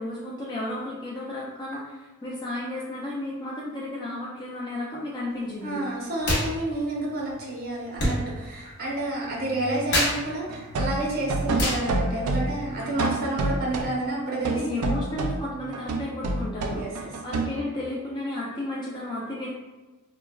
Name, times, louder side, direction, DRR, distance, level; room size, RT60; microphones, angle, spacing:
voice 1, 0.0-5.8 14.5-19.5, left 1 dB, 20° left, -6 dB, 0.3 m, -33 dB
voice 2, 5.6-15.0 16.7-17.1, right 1 dB, 45° right, -4 dB, 0.7 m, -30 dB
sound 1, 6.2-6.5 6.7-12.9, left 1 dB, 50° left, 0.8 m, -30 dB
sound 2, 10.5-13.9 14.3-15.5 15.7-17.6, right 2 dB, 75° right, 0.3 m, -28 dB
3.2 x 2.1 x 2.2 m, 1.2 s
head